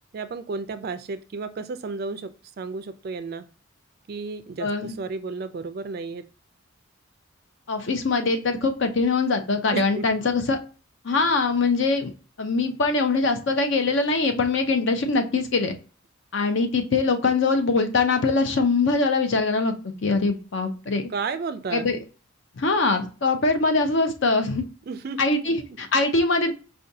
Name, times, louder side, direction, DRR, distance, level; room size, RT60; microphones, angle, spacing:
voice 1, 0.1-3.5 4.1-6.2 9.7-10.1 21.1-21.9 24.9-25.8, right 4 dB, 45° right, 11 dB, 0.3 m, -33 dB
voice 2, 4.6-4.9 7.7-10.6 11.0-12.1 12.4-15.8 16.3-21.1 21.7-22.0 22.6-24.6 25.2-26.5, left 3 dB, 55° left, 6 dB, 0.6 m, -23 dB
4.9 x 2.2 x 2.6 m, 0.35 s
head